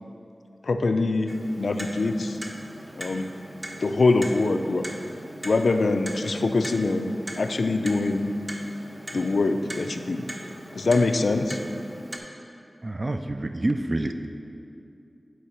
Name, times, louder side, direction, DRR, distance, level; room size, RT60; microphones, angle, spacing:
voice 1, 0.6-1.3 1.6-2.4 3.0-3.3 3.8-4.9 5.4-8.3 9.1-10.2 10.7-11.6, left 3 dB, 85° left, 7 dB, 0.4 m, -24 dB
Clock, 1.3-12.2, equal, 25° right, 0.8 m, -40 dB
voice 2, 12.8-14.3, right 1 dB, 45° right, 7 dB, 0.4 m, -27 dB
9.5 x 4.5 x 4.3 m, 2.6 s
wide cardioid pair, 55°, 0 cm